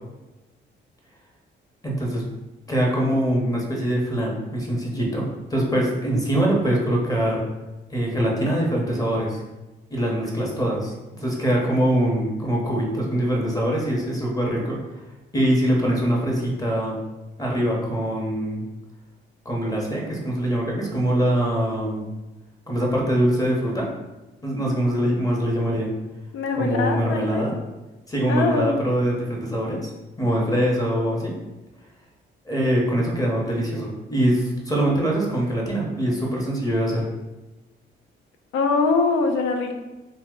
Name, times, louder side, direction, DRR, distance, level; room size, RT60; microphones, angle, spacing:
voice 1, 1.8-2.2 2.7-7.4 7.9-9.4 9.9-14.8 15.3-17.0 17.4-18.7 19.4-22.0 22.7-23.9 24.4-25.9 26.5-27.5 28.1-29.9 30.2-31.3 32.5-37.1, right 1 dB, 20° left, -2 dB, 0.8 m, -23 dB
voice 2, 26.3-27.5 28.3-28.8 38.5-39.8, left 4 dB, 85° left, 5 dB, 0.4 m, -23 dB
2.7 x 2.1 x 3.6 m, 1.1 s
cardioid pair, 90°, 20 cm